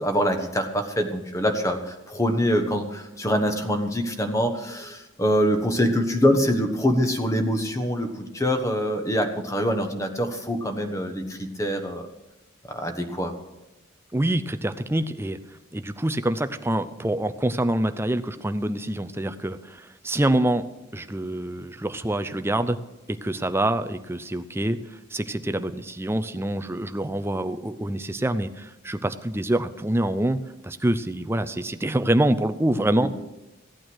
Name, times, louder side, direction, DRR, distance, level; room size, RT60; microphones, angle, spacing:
voice 1, 0.0-12.1 12.7-13.3 33.0-33.1, equal, 15° left, 5 dB, 1.3 m, -24 dB
voice 2, 14.1-15.4 15.7-20.7 20.9-22.8 23.1-24.8 25.1-30.4 30.6-33.1, right 1 dB, 10° right, 10 dB, 0.5 m, -26 dB
16.0 x 9.1 x 6.3 m, 0.99 s
head